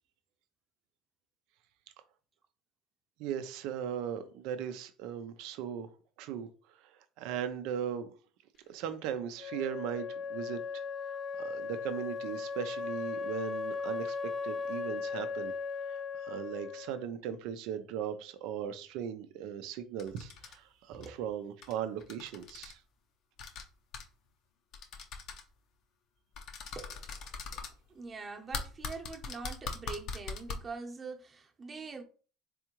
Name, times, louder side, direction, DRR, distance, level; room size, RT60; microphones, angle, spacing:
voice 1, 3.2-5.9 6.2-6.5 6.8-6.9 7.2-8.1 8.7-10.8 11.4-14.2 14.4-15.5 15.9-22.8, right 9 dB, 70° right, 0.6 m, -38 dB
Wind instrument woodwind instrument, 9.4-17.1, left 5 dB, 35° left, 0.3 m, -37 dB
sound 1, 20.0-20.5 20.9-21.1 21.6-21.7 22.0-22.7 23.4-23.6 23.9-24.0 24.7-25.4 26.4-27.7 28.5-30.5, left 5 dB, 60° left, 0.7 m, -40 dB
voice 2, 26.7-27.1 27.5-27.6 27.9-32.0, right 4 dB, 30° right, 0.9 m, -44 dB
3.5 x 3.4 x 3.0 m
supercardioid pair, 85°, 0 cm